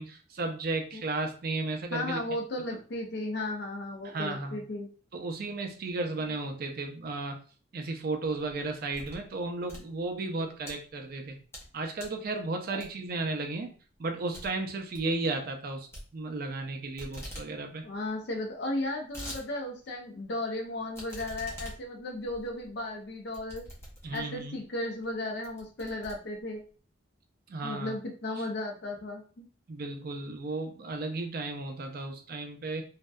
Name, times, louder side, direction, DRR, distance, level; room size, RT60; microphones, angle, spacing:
voice 1, 0.0-2.2 4.0-4.6 5.1-7.4 7.7-11.4 11.7-13.7 14.0-15.9 16.1-17.8 24.0-24.6 27.5-27.9 29.7-32.8, right 3 dB, 50° right, 4 dB, 0.4 m, -34 dB
voice 2, 1.9-4.9 12.7-12.8 17.8-23.6 24.1-26.6 27.6-29.5, left 2 dB, 55° left, 1 dB, 0.5 m, -35 dB
sound 1, 8.3-9.3 9.6-10.7 11.2-11.7 12.0-12.2 12.8-13.2 13.5-13.6 13.9-14.0 14.3-14.5 14.8-15.1 15.9-16.7 17.0-17.5 17.8-17.9 18.1-18.2 18.7-19.4 19.9-20.0 20.9-24.4 25.0-25.1 25.4-26.7, equal, 15° left, 0.6 m, -44 dB
2.6 x 2.1 x 2.2 m, 0.39 s
head